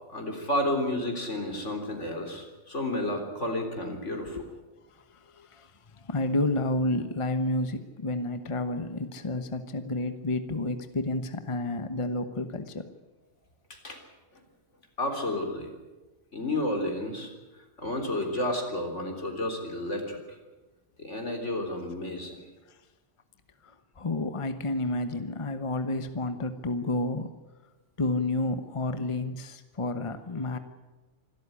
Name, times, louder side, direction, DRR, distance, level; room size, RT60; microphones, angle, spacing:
voice 1, 0.1-4.4 13.7-14.0 15.0-15.7 16.3-17.3 17.8-20.4 21.0-22.4 30.5-30.6, left 1 dB, 80° left, 4 dB, 4.1 m, -31 dB
voice 2, 5.3-5.7 6.0-12.8 23.6-27.3 28.0-30.6, left 2 dB, 25° left, 9 dB, 1.1 m, -30 dB
25.5 x 13.5 x 10.0 m, 1.2 s
omnidirectional pair, 1.2 m